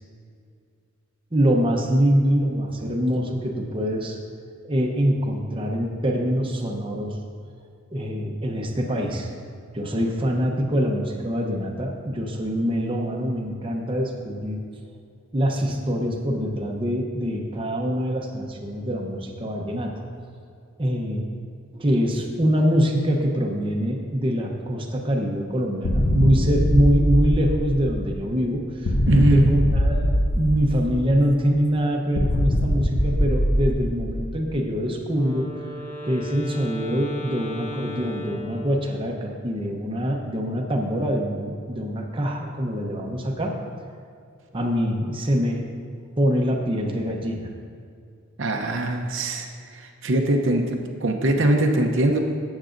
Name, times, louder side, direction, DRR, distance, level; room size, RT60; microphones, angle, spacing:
voice 1, 1.3-4.2 4.6-7.2 7.9-9.3 9.7-14.6 15.3-19.9 20.8-21.3 21.7-35.5 36.0-43.5 44.5-45.7 46.2-47.5, equal, 25° right, 0 dB, 0.8 m, -24 dB
sound 1, 25.8-28.1 28.8-31.1 32.2-34.4, equal, 65° left, 0.8 m, -22 dB
voice 2, 29.1-29.5 48.4-49.5 49.7-52.2, right 1 dB, 65° right, 3 dB, 0.8 m, -21 dB
Wind instrument woodwind instrument, 35.1-39.2, left 1 dB, 15° left, 1.0 m, -36 dB
13.5 x 8.1 x 2.6 m, 2.4 s
head